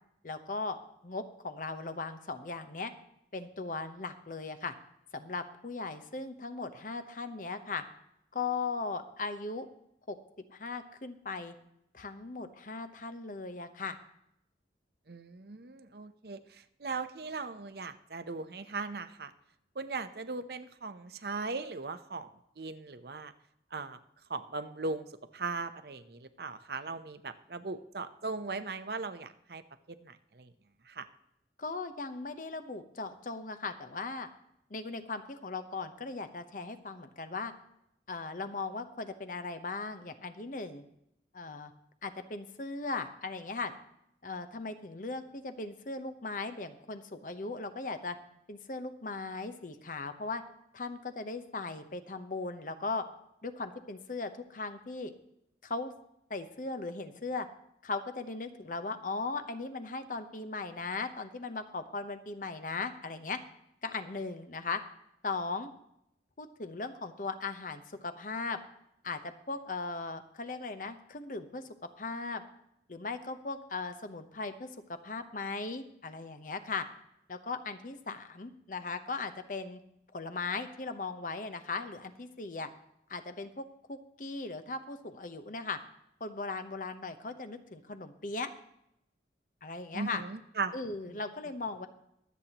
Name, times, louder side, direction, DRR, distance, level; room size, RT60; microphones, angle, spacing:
voice 1, 0.2-0.8 1.0-2.9 3.3-4.7 5.1-7.8 8.3-9.7 10.1-10.2 10.5-11.5 11.9-14.0 31.6-34.3 34.7-37.5 38.1-40.8 41.3-41.7 42.0-43.7 44.2-48.2 48.5-50.4 50.7-53.0 53.4-55.1 55.6-55.9 56.3-57.5 57.8-63.4 63.8-64.8 65.2-65.7 66.4-68.6 69.0-71.7 72.0-72.4 72.9-76.8 77.3-79.8 80.1-82.7 83.1-85.8 86.2-88.5 89.6-90.2 90.7-91.9, left 3 dB, 45° left, 8 dB, 0.9 m, -38 dB
voice 2, 15.1-19.3 19.8-22.3 22.6-23.3 23.7-24.0 24.3-25.1 25.3-29.6 29.9-30.5 30.9-31.1 89.9-90.7 91.1-91.2, right 4 dB, 60° right, 11 dB, 0.7 m, -38 dB
23.5 x 8.2 x 3.0 m, 0.79 s
head